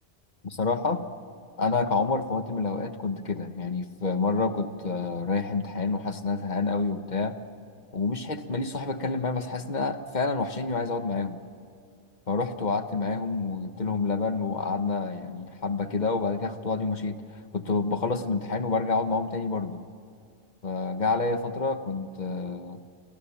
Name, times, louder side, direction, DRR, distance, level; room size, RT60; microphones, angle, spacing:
voice 1, 0.4-1.0 1.6-7.4 7.9-11.4 12.3-17.2 17.5-19.8 20.6-22.9, left 4 dB, 40° left, 9 dB, 1.3 m, -28 dB
29.5 x 24.0 x 7.2 m, 2.3 s
omnidirectional pair, 1.2 m